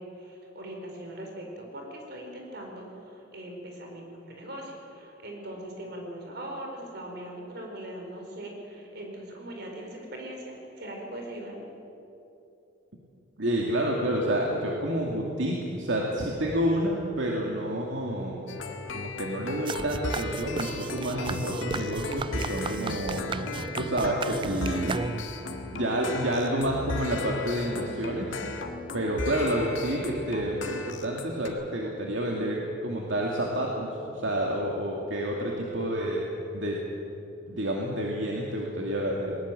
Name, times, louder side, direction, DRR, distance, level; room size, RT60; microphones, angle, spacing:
voice 1, 0.0-11.7 29.1-29.4, right 1 dB, 60° right, 1 dB, 4.5 m, -40 dB
voice 2, 13.4-18.4 18.9-23.4 23.7-25.2 25.5-28.6 28.9-36.2 36.5-36.8 37.5-39.4, right 1 dB, 75° right, -1 dB, 2.4 m, -29 dB
sound 1, 18.5-31.5, left 3 dB, 80° left, 1.9 m, -37 dB
sound 2, 19.7-25.5, right 4 dB, 25° right, 0.4 m, -35 dB
20.0 x 19.5 x 7.6 m, 2.9 s
head